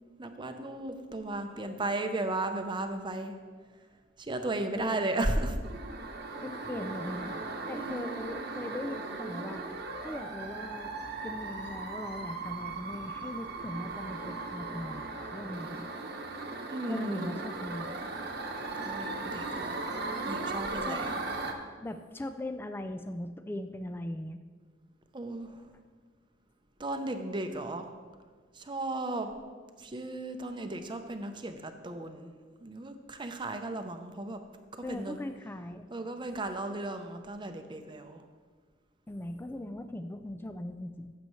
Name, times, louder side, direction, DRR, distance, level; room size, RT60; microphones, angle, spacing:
voice 1, 0.2-3.4 4.2-5.6 7.7-8.1 16.7-17.4 18.8-19.8 20.3-21.1 25.1-25.7 26.8-27.9 28.5-29.3 29.8-32.3 32.6-34.4 34.9-35.2 35.9-38.3, right 2 dB, 25° right, 7 dB, 0.7 m, -35 dB
voice 2, 4.8-5.1 6.4-7.4 7.7-9.7 10.0-10.9 11.2-15.0 15.3-15.9 16.9-18.0 20.8-21.2 21.8-24.4 34.8-35.9 39.1-41.1, left 1 dB, 10° left, 8 dB, 0.3 m, -39 dB
sound 1, 5.6-21.5, right 3 dB, 60° right, 1.0 m, -38 dB
14.5 x 7.7 x 3.1 m, 1.5 s
head